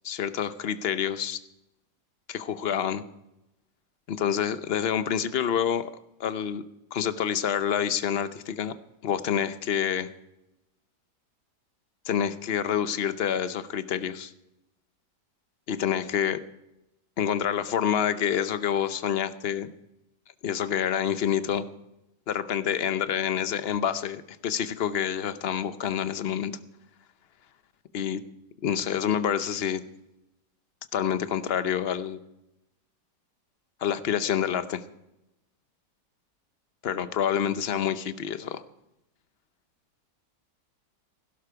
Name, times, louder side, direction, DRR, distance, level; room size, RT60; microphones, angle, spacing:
voice 1, 0.0-1.4 2.3-3.0 4.1-5.9 6.2-6.6 6.9-8.7 9.0-10.1 12.0-14.3 15.7-16.4 17.2-19.7 20.4-21.7 22.3-26.5 27.9-28.2 28.6-29.8 30.9-32.2 33.8-34.8 36.8-38.6, left 9 dB, 55° left, 12 dB, 0.7 m, -27 dB
16.5 x 12.0 x 4.7 m, 0.89 s
omnidirectional pair, 1.8 m